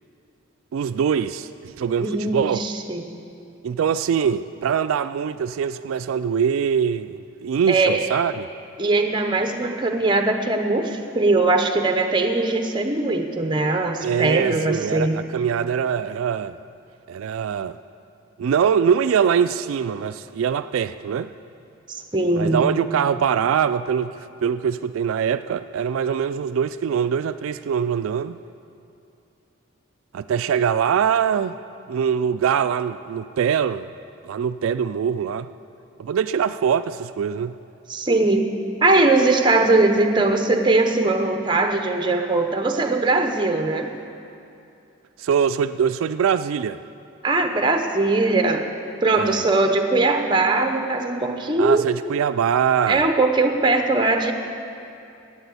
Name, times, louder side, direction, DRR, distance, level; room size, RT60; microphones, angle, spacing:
voice 1, 0.7-2.6 3.6-8.5 14.0-16.6 17.1-17.8 18.4-21.3 22.4-28.4 30.1-31.6 31.9-33.9 34.2-35.5 36.0-37.5 45.2-46.8 49.1-49.4 51.6-53.1, right 7 dB, 85° right, 12 dB, 0.3 m, -23 dB
voice 2, 2.0-3.2 7.7-8.1 8.8-15.2 21.9-22.6 37.9-38.5 38.8-43.9 47.2-48.7 49.0-51.9 52.9-54.3, right 2 dB, 20° right, 5 dB, 0.8 m, -20 dB
12.0 x 8.6 x 8.3 m, 2.6 s
head